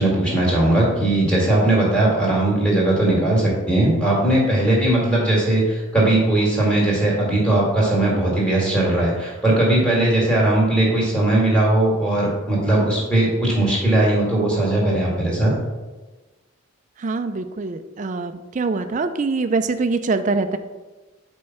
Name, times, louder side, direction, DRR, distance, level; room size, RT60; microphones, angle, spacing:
voice 1, 0.0-15.5, right 1 dB, 5° left, -5 dB, 2.0 m, -19 dB
voice 2, 17.0-20.6, right 3 dB, 35° right, 9 dB, 0.4 m, -24 dB
5.3 x 4.6 x 5.8 m, 1.2 s
head